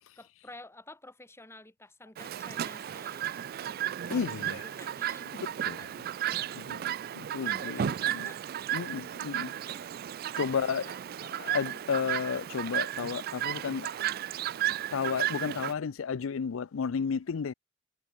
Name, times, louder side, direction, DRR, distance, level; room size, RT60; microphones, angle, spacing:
voice 1, 0.2-3.5 4.1-6.1 7.3-8.4 9.6-9.9 10.9-11.1, left 2 dB, 15° left, 4.3 m, -52 dB
Chirp tweet, 2.2-15.7, right 11 dB, 50° right, 0.3 m, -34 dB
voice 2, 4.1-4.7 5.3-5.9 6.3-8.3 8.7-9.5 10.4-10.9 11.3-13.9 14.9-17.5, left 6 dB, 80° left, 0.5 m, -33 dB
head